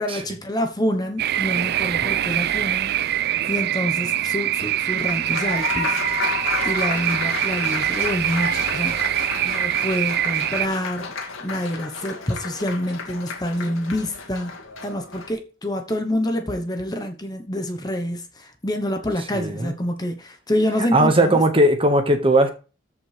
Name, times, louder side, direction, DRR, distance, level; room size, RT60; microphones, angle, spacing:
voice 1, 0.0-6.0 6.4-9.1 9.4-14.6 14.8-21.4, equal, 20° left, 1.0 m, -27 dB
sound 1, 1.2-10.7, right 12 dB, 50° right, 0.3 m, -24 dB
Applause, 4.9-15.3, left 4 dB, 80° left, 2.1 m, -31 dB
voice 2, 19.3-19.7 20.9-22.5, right 1 dB, 25° right, 1.5 m, -18 dB
14.0 x 5.5 x 3.3 m
head